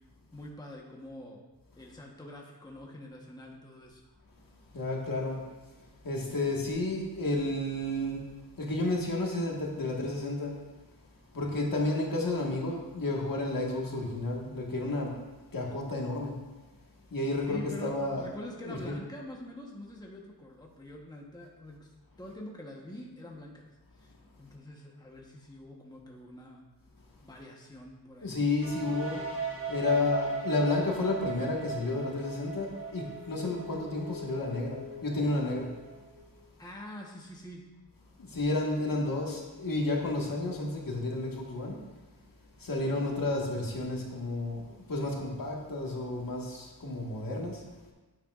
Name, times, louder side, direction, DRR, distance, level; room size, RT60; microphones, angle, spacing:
voice 1, 0.3-1.4 1.8-4.0 17.5-21.9 22.2-23.6 24.0-24.1 24.4-26.6 27.2-28.4 36.6-37.6 38.9-39.0, left 1 dB, 10° left, -1 dB, 1.2 m, -45 dB
voice 2, 4.7-5.4 6.0-8.2 8.6-10.5 11.3-15.1 15.5-16.3 17.1-18.4 18.6-19.0 28.2-29.2 29.7-35.7 38.2-41.8 42.6-47.6, left 2 dB, 55° left, -2 dB, 1.7 m, -31 dB
sound 1, 28.6-36.4, right 4 dB, 30° right, 2.2 m, -38 dB
10.0 x 9.4 x 2.5 m, 1.2 s
wide cardioid pair, 90°, 39 cm